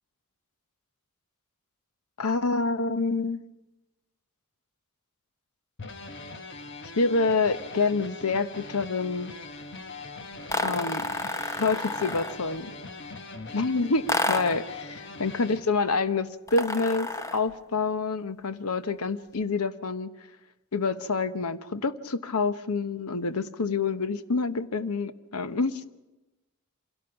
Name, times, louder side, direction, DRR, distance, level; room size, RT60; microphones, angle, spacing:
voice 1, 2.2-3.4 6.9-9.3 10.6-11.1 11.6-12.7 13.5-20.1 20.7-25.8, left 4 dB, 85° left, 12 dB, 0.9 m, -27 dB
sound 1, 5.8-15.6, left 3 dB, 50° left, 1.2 m, -42 dB
sound 2, 10.5-12.5 14.1-14.7 16.5-17.5, left 2 dB, 15° left, 0.8 m, -30 dB
26.0 x 17.5 x 5.8 m, 1.0 s
head